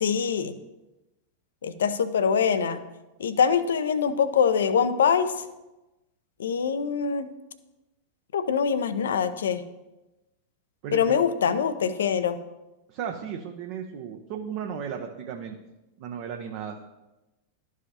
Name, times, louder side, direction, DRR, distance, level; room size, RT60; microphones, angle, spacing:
voice 1, 0.0-0.5 1.6-2.8 3.2-5.3 6.4-7.3 8.3-9.6 10.9-12.4, left 7 dB, 65° left, 13 dB, 0.5 m, -24 dB
voice 2, 10.8-11.2 12.9-15.6 16.0-16.8, right 7 dB, 45° right, 2 dB, 0.7 m, -35 dB
12.5 x 4.8 x 2.8 m, 1.0 s
figure-of-eight pair, 90°, 0 cm